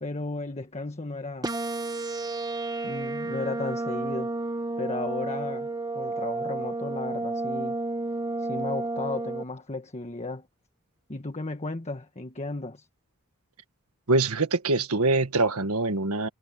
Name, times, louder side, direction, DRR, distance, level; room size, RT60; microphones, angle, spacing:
voice 1, 0.0-1.5 2.8-4.3 4.8-7.8 8.4-10.5 11.1-12.9, left 3 dB, 30° left, 1.4 m, -34 dB
sound 1, 1.4-9.4, right 2 dB, 20° right, 1.2 m, -31 dB
voice 2, 14.1-16.3, right 3 dB, 80° right, 1.7 m, -24 dB
head